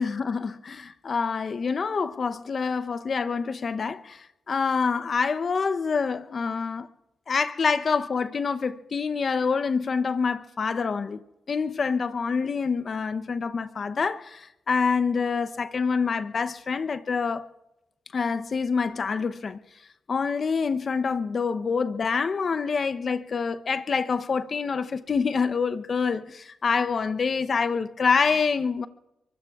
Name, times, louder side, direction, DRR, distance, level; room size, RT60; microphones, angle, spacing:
voice 1, 0.0-4.2 4.5-6.9 7.3-11.2 11.5-17.5 18.1-19.6 20.1-28.9, left 5 dB, 50° left, 0.7 m, -26 dB
24.0 x 23.5 x 2.4 m
cardioid pair, 60°, 0 cm